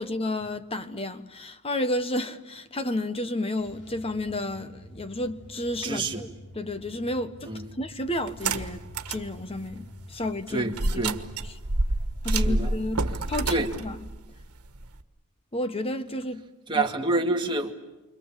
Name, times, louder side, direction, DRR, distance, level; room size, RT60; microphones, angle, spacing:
voice 1, 0.0-6.3 6.5-8.8 9.1-11.1 11.4-11.6 12.2-14.1 15.5-16.4 16.7-16.9, left 1 dB, 25° left, 1.2 m, -31 dB
sound 1, 3.5-13.5, left 1 dB, 85° left, 5.1 m, -48 dB
voice 2, 5.8-6.2 7.5-7.7 10.5-11.2 12.3-12.7 13.5-13.7 16.7-17.7, right 2 dB, 20° right, 2.1 m, -27 dB
sound 2, 8.3-9.3 9.7-9.8 10.7-15.0, right 2 dB, 85° right, 1.5 m, -28 dB
29.0 x 25.5 x 7.5 m
head